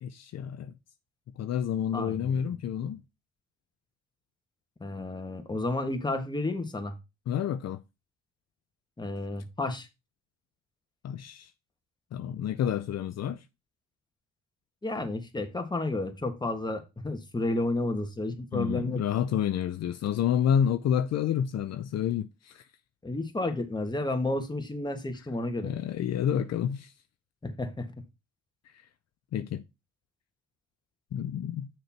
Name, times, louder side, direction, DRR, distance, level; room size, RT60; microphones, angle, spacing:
voice 1, 0.0-0.7 1.4-3.0 7.3-7.8 11.0-11.5 12.1-13.4 18.5-22.6 25.6-26.9 29.3-29.6 31.1-31.7, left 9 dB, 60° left, 0.6 m, -29 dB
voice 2, 1.9-2.4 4.8-7.0 9.0-9.9 14.8-19.0 23.0-25.7 27.4-27.9, left 2 dB, 15° left, 1.5 m, -31 dB
6.5 x 4.6 x 5.8 m
cardioid pair, 90°, 30 cm